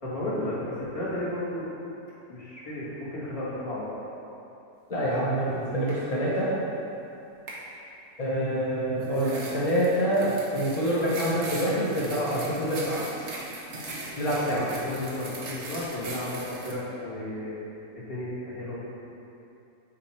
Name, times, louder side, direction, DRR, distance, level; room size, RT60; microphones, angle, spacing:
voice 1, 0.0-1.7 2.3-4.0 14.4-17.5 17.9-18.8, left 1 dB, 20° left, -10 dB, 1.6 m, -33 dB
voice 2, 4.9-6.5 8.2-13.0 14.2-14.7, equal, 40° left, -7 dB, 0.5 m, -26 dB
sound 1, 5.5-5.6 5.9-6.2 7.5-7.6 9.0-16.7, right 2 dB, 55° right, 1.1 m, -39 dB
8.6 x 2.9 x 4.3 m, 2.8 s
omnidirectional pair, 1.6 m